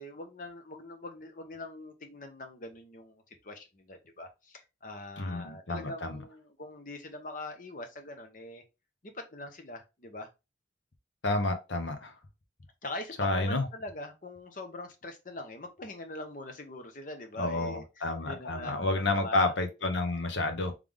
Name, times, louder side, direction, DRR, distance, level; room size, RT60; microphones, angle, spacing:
voice 1, 0.0-8.6 9.0-10.3 12.8-19.5, left 2 dB, 45° left, 0.9 m, -43 dB
voice 2, 5.2-6.2 11.2-12.1 13.2-13.6 17.4-20.7, left 2 dB, 85° left, 1.0 m, -30 dB
3.5 x 3.3 x 3.6 m
head